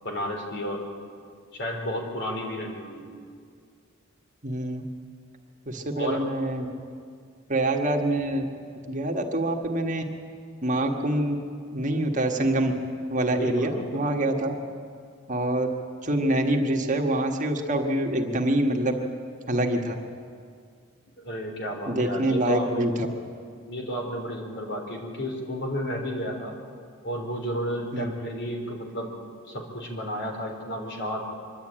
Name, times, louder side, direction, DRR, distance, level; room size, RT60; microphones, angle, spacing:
voice 1, 0.0-0.8 1.5-3.1 5.9-6.2 13.3-14.0 21.2-22.9 23.6-26.5 27.0-29.1 29.5-31.2, equal, 60° left, 1 dB, 3.7 m, -32 dB
voice 2, 4.4-4.8 5.7-6.7 7.5-8.4 8.9-10.0 10.6-11.4 11.7-12.7 13.1-14.6 15.3-15.7 16.0-18.9 19.5-20.0 21.9-23.1 27.9-28.1, right 1 dB, 40° right, 2 dB, 1.7 m, -25 dB
25.0 x 12.0 x 9.0 m, 2.2 s
head